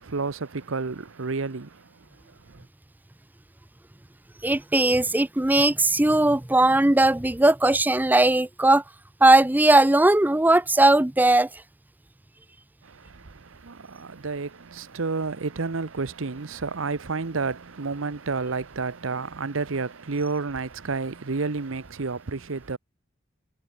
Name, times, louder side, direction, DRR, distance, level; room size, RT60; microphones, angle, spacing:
voice 1, 0.0-2.1 2.4-2.7 12.8-22.8, right 4 dB, 80° right, 0.9 m, -30 dB
voice 2, 4.4-8.8 9.2-11.5, right 2 dB, 10° right, 0.5 m, -19 dB
head